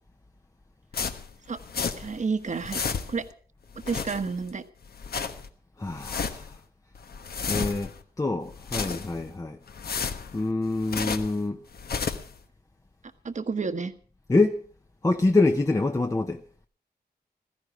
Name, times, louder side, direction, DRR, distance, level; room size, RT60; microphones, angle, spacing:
sound 1, 0.9-2.2 2.5-3.3 3.7-4.5 4.9-5.5 5.9-6.6 7.0-8.0 8.5-9.3 9.7-11.4 11.7-12.4, left 5 dB, 70° left, 1.2 m, -32 dB
voice 1, 2.0-2.8 3.1-3.2 3.9-4.6 13.2-13.9, right 4 dB, 45° right, 1.2 m, -30 dB
voice 2, 5.8-6.5 7.5-9.6 10.3-11.6 14.3-14.6 15.0-16.4, left 2 dB, 20° left, 0.8 m, -25 dB
16.0 x 14.5 x 4.8 m
wide cardioid pair, 110°, 17 cm